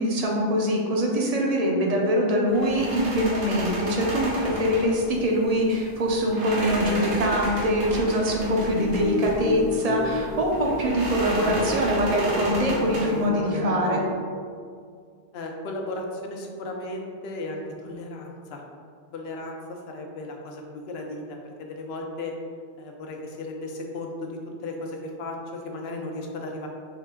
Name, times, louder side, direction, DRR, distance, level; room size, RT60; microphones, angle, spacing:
voice 1, 0.0-14.0, equal, 45° right, -1 dB, 0.6 m, -23 dB
sound 1, 2.5-13.3, right 1 dB, 70° right, 1.0 m, -33 dB
sound 2, 8.7-14.1, left 2 dB, 55° left, 1.0 m, -31 dB
voice 2, 15.3-18.6 19.1-22.3 22.8-26.7, left 2 dB, 75° left, 1 dB, 0.9 m, -35 dB
3.7 x 3.2 x 3.5 m, 2.2 s
omnidirectional pair, 1.1 m